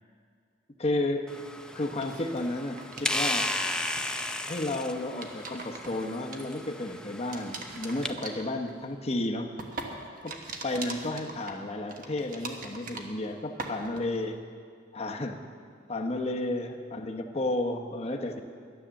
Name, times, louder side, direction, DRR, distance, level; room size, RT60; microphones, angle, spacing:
voice 1, 0.8-1.4 1.7-3.5 4.5-9.6 10.2-14.4 14.9-15.4 15.9-18.4, left 2 dB, 35° left, 4 dB, 0.9 m, -32 dB
sound 1, 1.3-8.1, left 1 dB, 5° left, 0.5 m, -35 dB
sound 2, 1.9-3.4 3.7-4.3 5.0-6.9 7.3-13.3 13.6-14.2, right 3 dB, 50° right, 1.2 m, -42 dB
11.5 x 10.0 x 7.0 m, 2.2 s
head